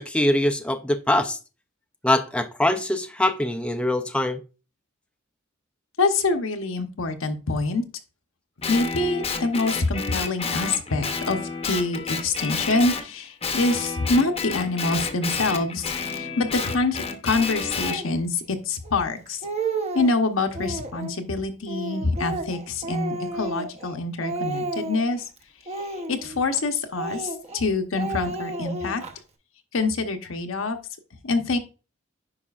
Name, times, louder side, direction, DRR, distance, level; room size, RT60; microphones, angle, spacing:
voice 1, 0.0-1.4 2.0-4.4, left 1 dB, 5° left, 0.4 m, -23 dB
voice 2, 6.0-7.8 8.7-19.4 19.9-25.3 25.8-29.0 29.7-30.8 31.2-31.6, left 3 dB, 85° left, 0.9 m, -25 dB
Guitar, 8.6-13.1 13.4-18.0, left 5 dB, 30° left, 0.8 m, -30 dB
Speech, 17.8-18.1 18.8-18.9 19.3-20.2 20.5-21.2 21.7-24.0 24.2-25.2 25.7-26.6 27.0-27.6 28.0-29.1, right 2 dB, 35° right, 0.9 m, -32 dB
9.8 x 5.0 x 2.4 m
head